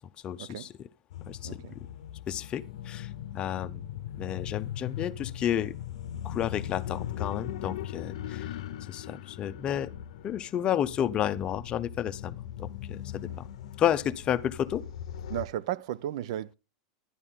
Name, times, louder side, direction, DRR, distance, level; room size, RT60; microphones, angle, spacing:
voice 1, 0.2-0.9 1.3-1.6 2.3-3.1 3.3-3.9 4.2-5.7 6.2-8.5 8.9-9.9 10.2-13.5 13.8-14.8, left 10 dB, 30° left, 0.7 m, -31 dB
sound 1, 1.1-15.5, left 11 dB, 80° left, 0.7 m, -39 dB
voice 2, 1.4-1.7 15.3-16.5, right 12 dB, 65° right, 0.5 m, -34 dB
11.0 x 11.0 x 3.8 m
supercardioid pair, 140°, 3 cm